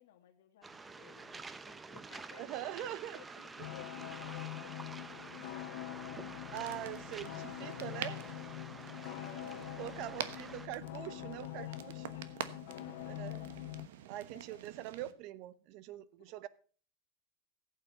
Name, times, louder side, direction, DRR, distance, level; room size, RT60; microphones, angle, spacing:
voice 1, 0.0-6.8 8.8-10.3 11.2-13.5 14.3-14.6 16.2-16.3, left 7 dB, 80° left, 1 dB, 1.5 m, -58 dB
Waves surf, 0.6-10.7, right 4 dB, 10° right, 0.5 m, -49 dB
voice 2, 2.4-3.2 6.5-8.2 9.8-11.9 13.1-13.4 14.1-16.5, right 14 dB, 50° right, 17 dB, 0.7 m, -43 dB
sound 1, 3.6-13.9, left 18 dB, 60° left, 0.5 m, -44 dB
sound 2, 6.5-15.1, right 10 dB, 85° right, 1.1 m, -47 dB
15.5 x 8.6 x 4.4 m, 0.42 s
supercardioid pair, 150°, 0 cm